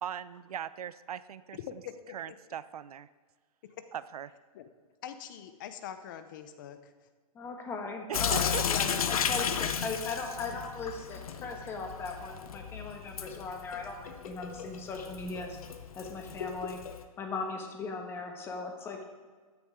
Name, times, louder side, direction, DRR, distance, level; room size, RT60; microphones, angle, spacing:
voice 1, 0.0-1.6 2.1-3.1 3.9-4.3 8.1-8.6, right 9 dB, 80° right, 16 dB, 0.6 m, -39 dB
voice 2, 1.5-2.2 3.8-3.9 4.5-4.7 5.0-6.9, left 9 dB, 30° left, 10 dB, 0.7 m, -43 dB
voice 3, 7.3-15.6 15.9-16.8 17.2-19.0, left 4 dB, 10° left, 3 dB, 1.2 m, -38 dB
Sink (filling or washing) / Drip, 8.1-17.0, left 7 dB, 70° left, 1.1 m, -34 dB
15.0 x 10.5 x 3.7 m, 1.5 s
hypercardioid pair, 165°, 19 cm